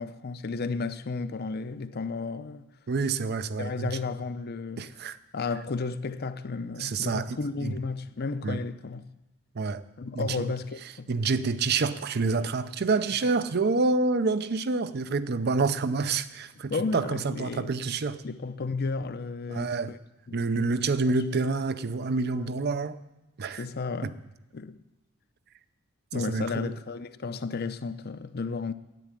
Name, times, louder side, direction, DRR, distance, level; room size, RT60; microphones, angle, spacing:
voice 1, 0.0-2.7 3.6-4.8 5.3-9.1 10.0-11.1 16.7-17.7 18.2-20.0 20.3-20.7 21.1-21.5 22.3-22.5 23.6-24.1 24.5-24.8 26.1-28.7, left 4 dB, 50° left, 0.6 m, -33 dB
voice 2, 2.9-4.0 4.8-5.2 6.8-7.8 8.4-8.6 9.5-9.8 10.1-10.5 11.1-18.2 19.5-19.9 20.3-23.0 23.4-23.7 24.0-24.1 26.1-26.7, right 4 dB, 55° right, 0.6 m, -28 dB
10.5 x 8.3 x 9.8 m
head